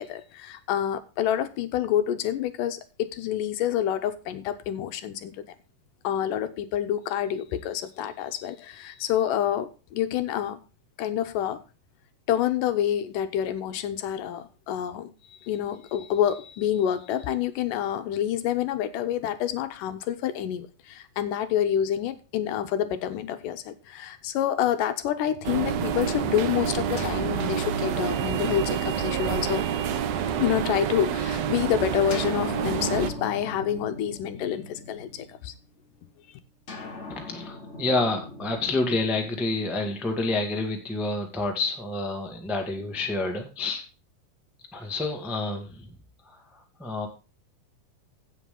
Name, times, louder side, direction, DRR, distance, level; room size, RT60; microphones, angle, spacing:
voice 1, 0.0-5.5 6.0-10.6 11.0-11.6 12.3-15.1 15.4-29.6 30.4-35.5, left 10 dB, 75° left, 10 dB, 2.3 m, -28 dB
sound 1, 25.4-33.1, right 8 dB, 70° right, 1.6 m, -28 dB
sound 2, 27.0-30.8 32.1-35.7 36.7-40.8, left 3 dB, 45° left, 0.9 m, -41 dB
voice 2, 37.1-43.8 44.7-45.9 46.2-47.1, left 2 dB, ahead, 2 dB, 0.7 m, -29 dB
16.0 x 5.8 x 3.8 m, 0.33 s
omnidirectional pair, 4.0 m